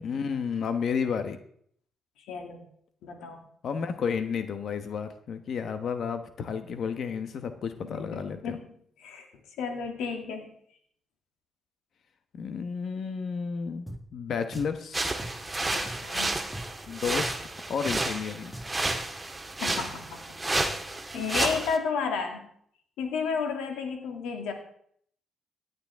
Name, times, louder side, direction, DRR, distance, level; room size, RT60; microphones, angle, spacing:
voice 1, 0.0-1.4 3.6-8.6 12.4-15.1 16.9-18.5, left 6 dB, 60° left, 9 dB, 1.1 m, -32 dB
voice 2, 2.3-2.6 3.0-3.4 7.8-8.7 9.0-9.3 9.6-10.5 15.7-16.4 19.6-20.2 21.1-22.5 23.0-24.5, left 5 dB, 90° left, 3 dB, 2.5 m, -32 dB
Drum, 13.9-14.0 14.5-14.8 15.2-15.3 15.9-16.1 16.5-16.7 17.2-17.5 17.9-18.0 18.5-19.1, right 1 dB, 5° left, 1.5 m, -40 dB
sound 1, 14.9-21.8, right 2 dB, 15° right, 1.7 m, -31 dB
17.0 x 9.6 x 3.6 m, 0.64 s
cardioid pair, 90°, 0 cm